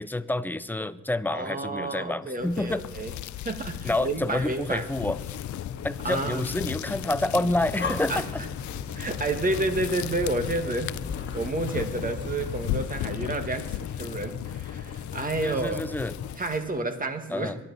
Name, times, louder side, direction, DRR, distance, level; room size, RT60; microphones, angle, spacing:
voice 1, 0.0-2.8 3.8-5.2 5.8-8.4 15.4-16.1 17.3-17.6, left 2 dB, 5° left, 13 dB, 0.6 m, -28 dB
voice 2, 1.3-3.1 3.5-4.9 6.0-6.4 8.1-8.3 9.0-11.0 11.3-15.8 16.4-17.5, right 2 dB, 30° right, 6 dB, 1.8 m, -30 dB
sound 1, 2.4-16.8, left 14 dB, 70° left, 0.5 m, -37 dB
sound 2, 5.0-16.3, left 8 dB, 55° left, 0.9 m, -38 dB
Breathing, 7.4-13.2, left 4 dB, 35° left, 1.6 m, -39 dB
22.5 x 11.5 x 4.1 m, 1.1 s
cardioid pair, 90°, 30 cm